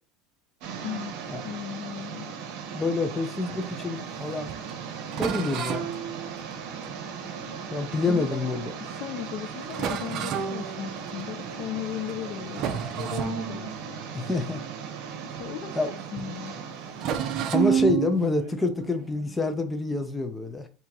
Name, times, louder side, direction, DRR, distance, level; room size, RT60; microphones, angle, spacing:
sound 1, 0.6-17.5, right 6 dB, 60° right, 1.1 m, -38 dB
voice 1, 0.8-1.1 1.4-2.4 8.1-8.5 8.9-14.0 15.2-16.5, left 11 dB, 50° left, 0.3 m, -37 dB
voice 2, 2.7-4.5 5.2-5.9 7.7-8.7 14.1-14.6 15.8-15.9 17.5-20.7, left 2 dB, 10° left, 0.6 m, -27 dB
sound 2, 3.4-8.4 8.9-9.1 9.3-9.4 9.7-11.6 12.0-12.3 12.5-15.9 16.2-16.3 17.0-20.0, right 9 dB, 45° right, 0.6 m, -32 dB
4.4 x 2.8 x 3.8 m
cardioid pair, 150°, 0 cm